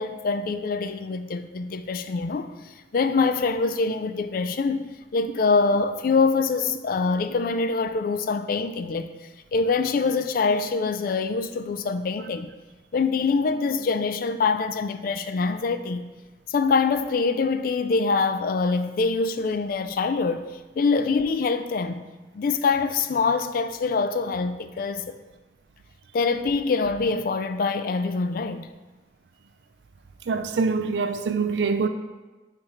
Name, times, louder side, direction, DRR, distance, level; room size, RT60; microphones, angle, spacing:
voice 1, 0.0-2.5 2.9-9.1 9.5-12.5 12.9-16.1 16.5-20.5 20.8-22.0 22.3-25.1 26.1-28.7, left 4 dB, 55° left, 0.3 m, -24 dB
voice 2, 30.3-31.9, right 4 dB, 75° right, 0.4 m, -24 dB
4.5 x 4.3 x 4.9 m
head